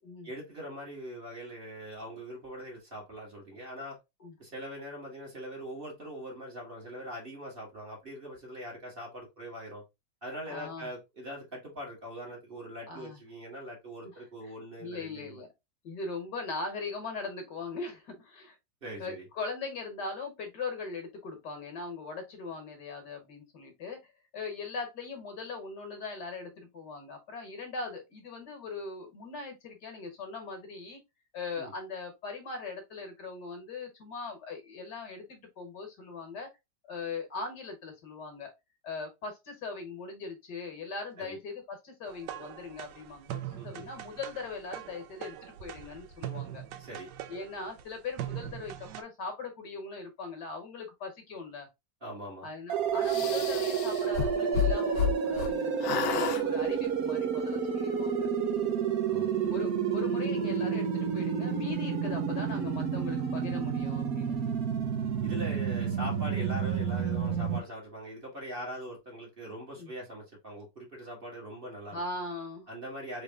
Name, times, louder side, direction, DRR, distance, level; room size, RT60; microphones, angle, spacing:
voice 1, 0.2-4.0 4.4-9.8 10.2-15.4 18.8-19.2 31.6-31.7 41.2-41.4 43.6-43.9 46.8-47.1 52.0-52.5 59.1-59.4 65.2-72.0 72.7-73.2, equal, 30° right, 1.8 m, -42 dB
voice 2, 10.5-10.9 12.9-13.2 14.0-14.5 14.8-15.5 15.8-18.6 19.0-31.0 31.3-36.5 36.9-38.5 38.8-46.6 47.3-51.7 52.4-58.3 59.4-64.4 66.3-66.5 69.8-69.9 71.9-72.7, left 4 dB, 65° left, 1.9 m, -40 dB
sound 1, 42.1-49.0, right 12 dB, 80° right, 1.2 m, -41 dB
sound 2, 52.7-67.6, right 7 dB, 60° right, 1.2 m, -30 dB
sound 3, 53.0-55.5 55.8-56.4, left 9 dB, 80° left, 1.5 m, -30 dB
4.2 x 3.4 x 3.5 m
omnidirectional pair, 2.0 m